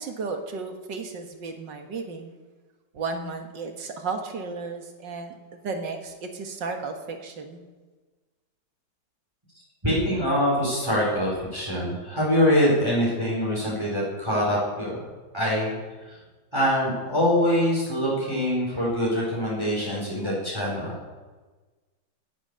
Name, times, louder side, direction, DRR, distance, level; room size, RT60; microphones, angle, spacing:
voice 1, 0.0-2.3 2.9-5.3 5.6-7.6, right 4 dB, 75° right, 5 dB, 2.2 m, -34 dB
voice 2, 9.8-15.0 15.3-15.8 16.5-21.0, equal, 15° right, -6 dB, 4.5 m, -24 dB
18.0 x 8.5 x 6.9 m, 1.3 s
omnidirectional pair, 2.0 m